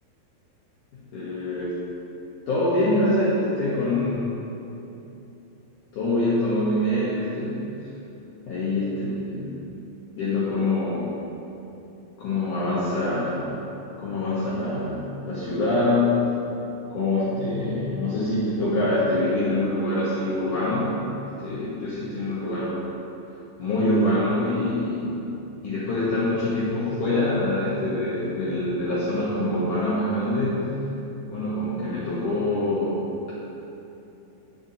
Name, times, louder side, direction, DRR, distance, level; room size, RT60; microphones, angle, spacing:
voice 1, 0.9-1.7 2.5-4.3 5.9-7.7 8.5-9.7 10.1-11.1 12.2-13.6 14.0-16.2 16.9-21.0 21.4-22.8 23.6-25.3 25.6-30.7 31.3-33.3, left 1 dB, 80° left, -10 dB, 1.8 m, -25 dB
10.5 x 7.9 x 2.8 m, 2.9 s
omnidirectional pair, 5.5 m